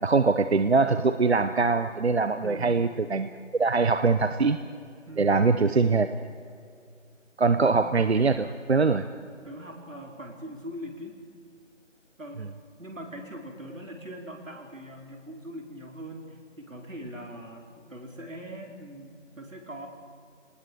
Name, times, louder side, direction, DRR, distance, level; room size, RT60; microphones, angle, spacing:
voice 1, 0.0-3.3 3.6-4.6 5.2-6.1 7.4-9.1, right 4 dB, 55° right, 11 dB, 0.9 m, -22 dB
voice 2, 2.4-2.9 5.1-5.5 7.5-7.8 9.4-11.2 12.2-12.5 12.8-19.9, equal, 85° right, 2 dB, 4.7 m, -41 dB
21.5 x 19.5 x 6.7 m, 2.3 s
figure-of-eight pair, 165°, 38 cm